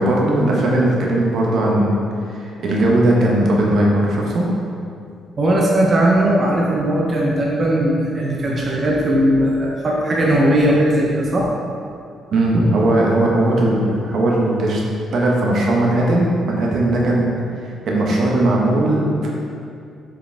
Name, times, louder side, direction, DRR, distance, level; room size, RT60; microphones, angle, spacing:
voice 1, 0.0-2.0 2.2-4.5 12.3-14.8 15.1-17.3 17.6-19.3, right 1 dB, 65° right, -2 dB, 1.2 m, -18 dB
voice 2, 5.4-11.5, right 1 dB, 40° right, -3 dB, 0.9 m, -18 dB
7.0 x 5.1 x 3.4 m, 2.4 s
cardioid pair, 90°, 0 cm